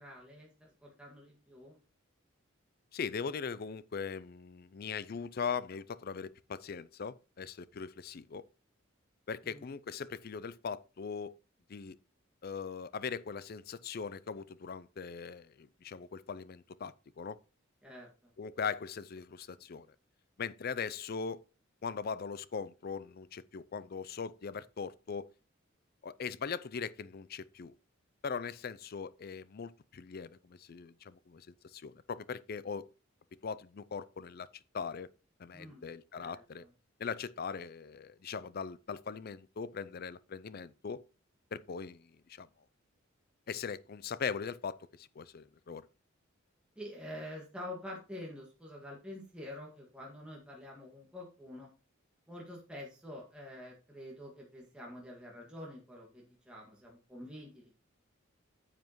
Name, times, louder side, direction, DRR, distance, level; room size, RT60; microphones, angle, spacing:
voice 1, 0.0-1.8 9.4-9.7 17.8-18.3 35.5-35.8 36.2-36.7 46.8-51.7 52.3-57.8, left 1 dB, 5° right, 1.9 m, -47 dB
voice 2, 2.9-8.4 9.3-11.3 11.7-12.0 12.4-17.4 18.4-19.9 20.4-21.4 21.8-25.3 26.0-27.7 28.2-31.5 31.7-32.9 33.4-34.5 34.7-35.1 35.4-36.6 37.0-41.0 41.5-42.5 43.5-45.8, left 6 dB, 50° left, 0.4 m, -40 dB
9.3 x 7.6 x 3.1 m
head